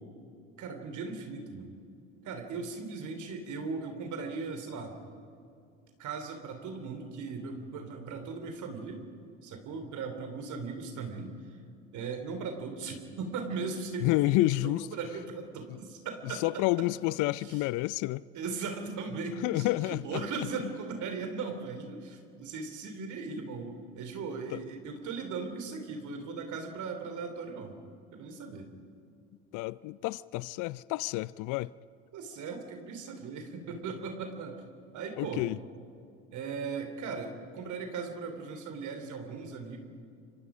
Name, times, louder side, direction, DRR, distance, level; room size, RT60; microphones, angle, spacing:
voice 1, 0.6-1.8 2.2-4.9 6.0-9.1 9.4-11.4 11.9-16.9 17.4-17.6 18.3-27.7 28.1-28.7 32.1-34.6 34.9-35.7 36.3-39.8, right 4 dB, 55° right, 3.5 m, -38 dB
voice 2, 14.0-14.9 15.7-15.8 16.2-18.2 19.4-20.2 23.0-23.1 24.5-24.6 29.5-31.7 35.2-35.6, left 19 dB, 60° left, 0.6 m, -29 dB
29.5 x 24.5 x 5.1 m
hypercardioid pair, 70°, 35 cm